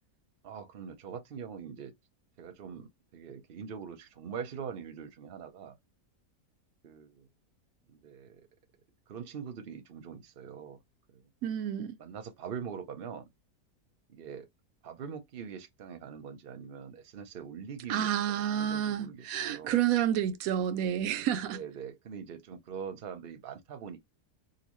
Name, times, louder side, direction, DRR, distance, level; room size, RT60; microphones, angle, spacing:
voice 1, 0.4-1.9 2.4-5.8 6.8-7.3 7.9-8.5 9.1-10.8 11.1-11.3 12.0-13.3 14.1-14.5 14.8-19.8 21.5-24.0, right 7 dB, 45° right, 0.8 m, -43 dB
voice 2, 11.4-12.0 17.9-21.6, right 10 dB, 75° right, 1.0 m, -29 dB
3.9 x 2.3 x 3.1 m
omnidirectional pair, 1.6 m